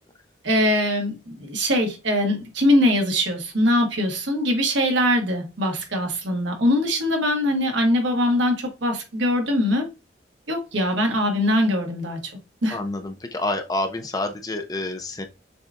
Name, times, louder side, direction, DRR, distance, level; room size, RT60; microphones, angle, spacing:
voice 1, 0.4-9.9 10.5-12.2 12.6-12.8, left 1 dB, 80° right, 1.2 m, -22 dB
voice 2, 12.7-15.3, left 2 dB, 20° left, 0.5 m, -28 dB
6.6 x 2.3 x 2.5 m
head